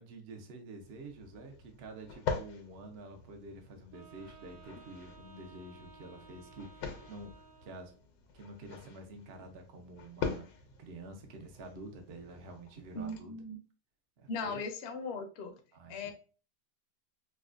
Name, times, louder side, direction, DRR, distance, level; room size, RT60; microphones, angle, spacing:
voice 1, 0.0-7.9 8.3-10.5 10.8-13.3 14.2-14.6 15.7-16.1, right 2 dB, 75° right, 4 dB, 0.6 m, -48 dB
sound 1, 0.8-13.2, left 5 dB, 85° left, 1.4 m, -44 dB
Wind instrument woodwind instrument, 3.9-8.0, right 5 dB, 60° right, 1.1 m, -57 dB
voice 2, 12.9-13.6 14.3-15.5 15.9-16.1, left 3 dB, 65° left, 5 dB, 0.6 m, -38 dB
4.8 x 2.2 x 2.4 m, 0.35 s
omnidirectional pair, 1.9 m